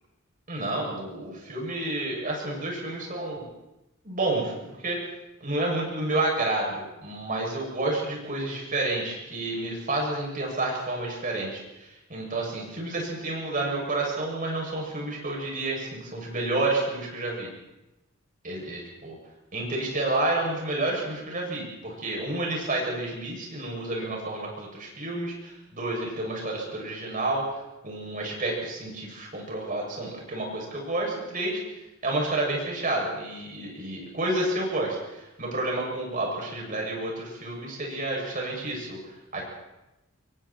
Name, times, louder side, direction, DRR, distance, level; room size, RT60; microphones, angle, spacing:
voice 1, 0.5-3.4 4.0-5.0 5.4-17.5 18.4-19.2 19.5-27.4 27.8-31.6 32.0-39.0 39.3-39.4, right 2 dB, 40° right, -1 dB, 7.0 m, -30 dB
26.0 x 23.0 x 4.4 m, 0.97 s
head